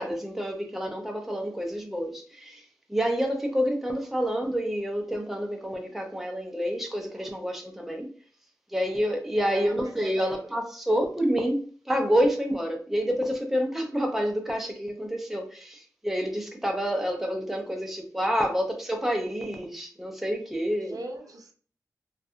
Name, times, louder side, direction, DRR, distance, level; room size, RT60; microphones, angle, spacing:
voice 1, 0.0-2.6 2.9-8.1 8.7-21.0, equal, 5° right, 0.5 m, -28 dB
voice 2, 9.4-10.5 10.9-11.0 20.9-21.5, right 2 dB, 70° right, 0.5 m, -40 dB
2.5 x 2.4 x 2.4 m
wide cardioid pair, 90°, 6 cm